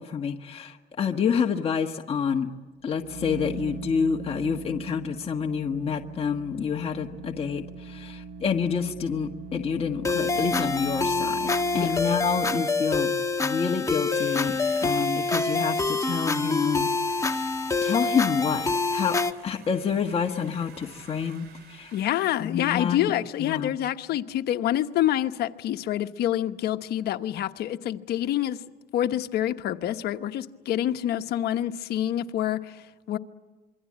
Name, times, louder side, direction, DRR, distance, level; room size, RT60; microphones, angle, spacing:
voice 1, 0.0-2.5 2.8-13.1 13.4-19.2 19.4-21.9 22.4-23.1 23.4-23.7, left 6 dB, 35° left, 1.5 m, -28 dB
sound 1, 2.8-12.7, right 4 dB, 55° right, 2.3 m, -40 dB
sound 2, 10.0-19.3, left 3 dB, 20° left, 1.4 m, -26 dB
Sawing, 14.1-22.1, right 7 dB, 75° right, 5.3 m, -50 dB
voice 2, 21.9-28.6 28.9-33.2, left 12 dB, 70° left, 1.2 m, -27 dB
27.0 x 23.5 x 8.7 m
cardioid pair, 110°, 17 cm